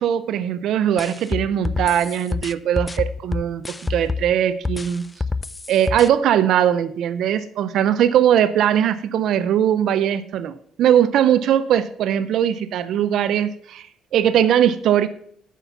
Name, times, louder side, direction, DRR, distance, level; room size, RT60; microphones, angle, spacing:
voice 1, 0.0-3.6 3.9-5.0 5.7-13.9 14.1-15.1, right 10 dB, 70° right, 12 dB, 0.4 m, -20 dB
sound 1, 1.0-4.3 4.6-6.1, left 3 dB, 20° left, 0.3 m, -27 dB
8.2 x 5.8 x 5.6 m, 0.65 s
cardioid pair, 100°, 0 cm